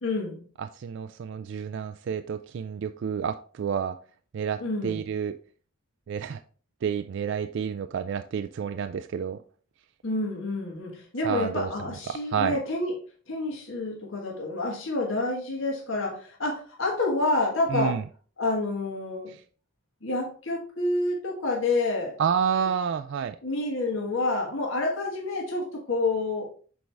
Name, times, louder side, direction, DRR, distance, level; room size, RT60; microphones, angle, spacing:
voice 1, 0.0-0.4 4.6-5.0 10.0-12.9 13.3-18.0 18.4-19.3 20.0-22.2 23.4-26.4, left 2 dB, 65° left, -1 dB, 1.5 m, -28 dB
voice 2, 0.6-4.0 4.3-5.4 6.1-6.4 6.8-9.4 11.2-11.7 12.1-12.6 17.7-18.0 22.2-23.4, right 7 dB, 60° right, 9 dB, 0.3 m, -29 dB
6.3 x 4.5 x 3.4 m, 0.41 s
head